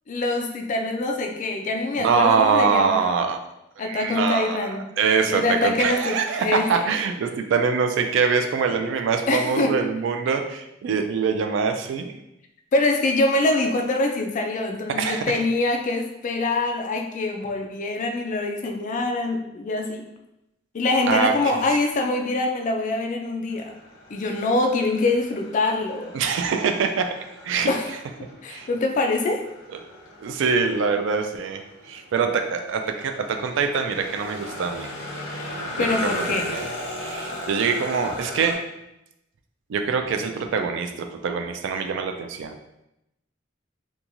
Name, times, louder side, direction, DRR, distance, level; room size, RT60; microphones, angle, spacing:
voice 1, 0.1-3.1 3.8-4.9 5.2-6.8 9.3-9.7 12.7-20.0 20.7-23.8 24.1-26.1 27.7-27.9 28.4-29.4 35.8-36.5, left 2 dB, 40° left, 3 dB, 0.3 m, -24 dB
voice 2, 2.0-3.4 3.8-12.1 15.0-15.4 21.1-21.6 26.1-27.2 27.4-27.7 28.5-28.7 30.2-31.6 31.9-34.9 35.8-36.7 37.0-38.6 39.7-42.5, right 5 dB, 70° right, 5 dB, 0.3 m, -24 dB
sound 1, 23.5-38.5, left 1 dB, 85° left, 0.7 m, -37 dB
2.9 x 2.3 x 2.5 m, 0.87 s
head